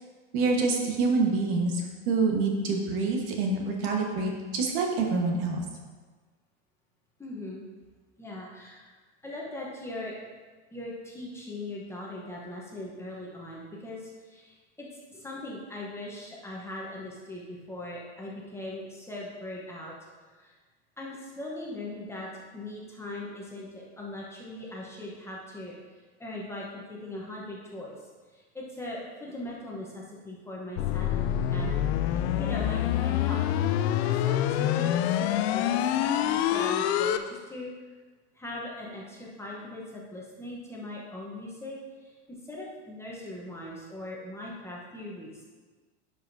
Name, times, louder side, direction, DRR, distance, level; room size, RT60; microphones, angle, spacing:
voice 1, 0.3-5.6, right 3 dB, 60° right, 1 dB, 1.4 m, -26 dB
voice 2, 7.2-7.7 8.2-8.9 9.2-10.1 10.7-19.9 20.4-20.5 21.0-25.8 26.2-28.0 28.3-31.8 32.1-33.5 33.7-37.7 38.3-45.4, left 1 dB, 10° left, -4 dB, 0.9 m, -40 dB
sound 1, 30.8-37.2, left 11 dB, 65° left, 0.5 m, -26 dB
10.5 x 5.1 x 2.7 m, 1.4 s
supercardioid pair, 140°, 34 cm